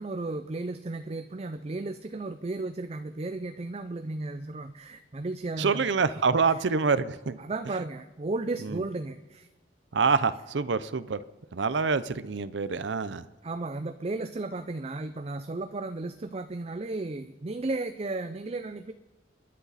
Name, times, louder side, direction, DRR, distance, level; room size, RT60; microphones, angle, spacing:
voice 1, 0.0-5.9 6.4-6.6 7.4-9.5 11.7-12.0 13.4-18.9, right 2 dB, 35° right, 9 dB, 0.5 m, -34 dB
voice 2, 5.6-7.4 8.6-8.8 9.9-11.2 11.5-13.2, right 5 dB, 80° right, 15 dB, 0.6 m, -26 dB
29.5 x 11.0 x 4.1 m, 1.1 s
head